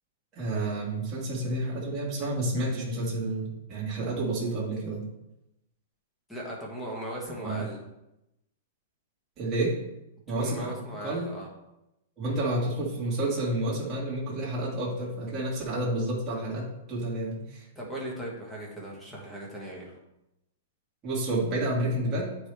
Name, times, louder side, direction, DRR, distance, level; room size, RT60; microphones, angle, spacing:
voice 1, 0.3-5.0 7.4-7.6 9.4-9.7 10.3-10.8 11.0-11.3 12.2-17.7 21.0-22.3, right 1 dB, 15° right, -7 dB, 1.9 m, -30 dB
voice 2, 6.3-7.8 10.4-11.5 17.7-20.0, right 1 dB, 5° left, -4 dB, 1.3 m, -38 dB
8.5 x 4.8 x 3.4 m, 0.89 s
supercardioid pair, 180°, 0 cm